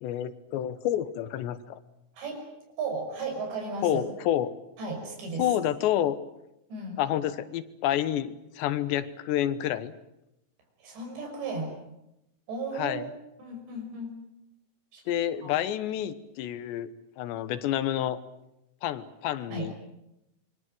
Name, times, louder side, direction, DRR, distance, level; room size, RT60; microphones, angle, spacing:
voice 1, 0.0-1.8 3.8-4.5 5.4-6.2 7.0-9.9 12.8-13.1 15.1-16.9 17.2-18.2 18.8-19.7, left 11 dB, 80° left, 13 dB, 3.4 m, -29 dB
voice 2, 2.1-2.5 2.8-4.0 4.8-5.5 6.7-7.0 10.8-11.7 12.5-13.0 13.4-14.1 14.9-15.0 15.4-15.6 19.5-19.7, right 3 dB, 80° right, 3 dB, 8.3 m, -35 dB
27.0 x 23.5 x 7.8 m, 0.86 s
omnidirectional pair, 5.0 m